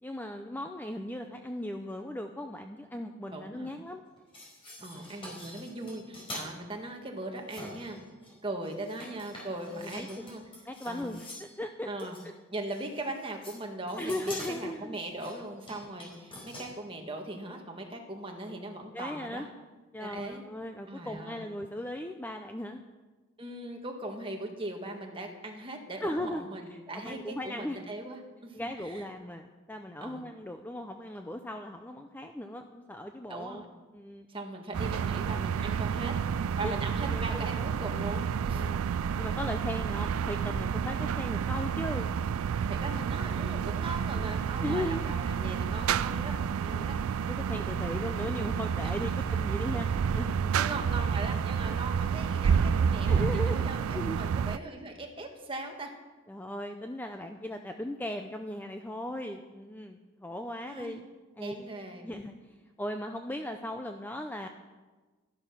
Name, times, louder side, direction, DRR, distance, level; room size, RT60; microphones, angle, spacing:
voice 1, 0.0-4.0 9.8-10.1 10.7-12.1 14.0-15.0 18.9-19.5 19.9-22.8 26.0-27.8 28.5-33.6 33.9-34.3 36.6-36.7 37.1-37.6 38.5-38.8 39.2-42.1 44.6-45.1 46.7-46.9 47.2-49.9 50.1-50.5 53.1-53.7 53.9-54.2 56.3-61.0 61.4-61.7 62.0-64.5, left 1 dB, 10° left, 5 dB, 0.5 m, -38 dB
voice 2, 3.3-3.7 4.8-8.0 8.4-10.4 10.8-11.1 11.8-12.2 12.5-19.5 20.0-20.4 20.9-21.5 23.4-29.0 30.0-30.2 33.3-33.7 34.3-36.1 36.6-38.7 42.7-47.0 48.3-48.5 48.8-49.1 49.7-49.9 50.5-55.9 60.6-61.0 61.4-62.1, right 2 dB, 25° right, 2 dB, 1.7 m, -39 dB
sound 1, 4.2-6.5 7.4-8.3 8.6-11.6 12.0-12.2 12.7-13.6 13.9-16.7, left 1 dB, 25° left, 4.7 m, -45 dB
sound 2, 34.7-54.6, right 7 dB, 80° right, 0.4 m, -30 dB
13.5 x 11.5 x 5.9 m, 1.3 s
head